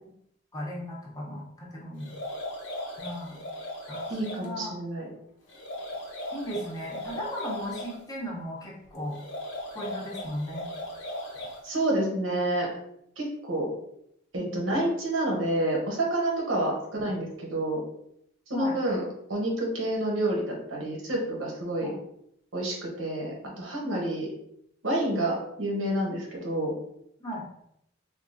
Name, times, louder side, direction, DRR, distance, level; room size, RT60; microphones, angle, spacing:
voice 1, 0.5-2.1 3.0-3.4 3.9-4.7 6.3-9.2 9.7-10.7 14.3-14.7 18.5-18.8 21.8-21.9 23.8-24.1 27.2-27.5, equal, 20° left, -4 dB, 0.6 m, -36 dB
sound 1, 2.0-4.5 5.5-8.0 9.1-11.7, left 1 dB, 85° left, 0.8 m, -38 dB
voice 2, 4.1-5.1 11.6-12.7 13.2-13.7 14.3-17.8 18.5-19.0 19.3-21.9 22.5-24.3 24.8-26.7, right 1 dB, 85° right, -1 dB, 0.9 m, -28 dB
3.5 x 2.3 x 2.5 m, 0.75 s
head